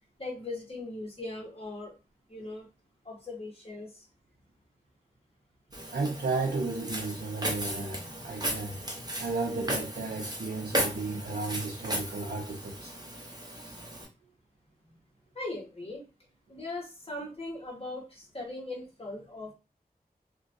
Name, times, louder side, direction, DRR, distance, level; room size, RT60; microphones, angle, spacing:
voice 1, 0.2-1.9 2.3-2.7 3.0-4.1 15.3-16.0 16.5-19.5, left 2 dB, 35° left, 1.3 m, -39 dB
Walk footsteps, 5.7-14.1, right 1 dB, 25° right, 0.8 m, -36 dB
voice 2, 5.9-8.8 9.2-12.9, right 3 dB, 75° right, 0.6 m, -33 dB
3.0 x 2.3 x 2.6 m
wide cardioid pair, 50°, 16 cm